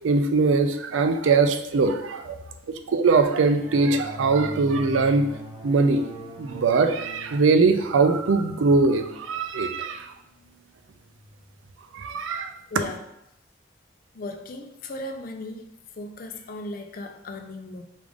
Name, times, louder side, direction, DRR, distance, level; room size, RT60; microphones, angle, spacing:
voice 1, 0.0-2.4 2.9-5.3 5.6-6.0 6.4-10.1 11.9-12.5, right 4 dB, 80° right, 8 dB, 0.4 m, -21 dB
sound 1, 3.4-11.6, right 1 dB, 25° right, 0.5 m, -42 dB
voice 2, 12.7-13.0 14.1-17.8, left 2 dB, 45° left, 5 dB, 0.4 m, -36 dB
4.9 x 2.4 x 3.5 m, 0.80 s
head